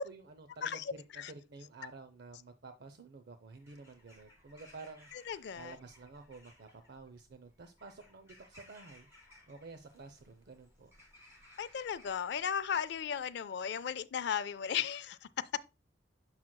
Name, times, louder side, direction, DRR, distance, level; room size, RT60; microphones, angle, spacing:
voice 1, 0.0-5.1 5.6-9.1 9.5-10.9, right 3 dB, 60° right, 0.5 m, -51 dB
voice 2, 0.6-1.3 5.1-5.8 11.6-15.6, left 8 dB, 65° left, 0.4 m, -36 dB
Bird vocalization bird call bird song / Crow, 3.5-13.4, left 1 dB, 15° right, 3.0 m, -62 dB
7.2 x 6.1 x 2.2 m
head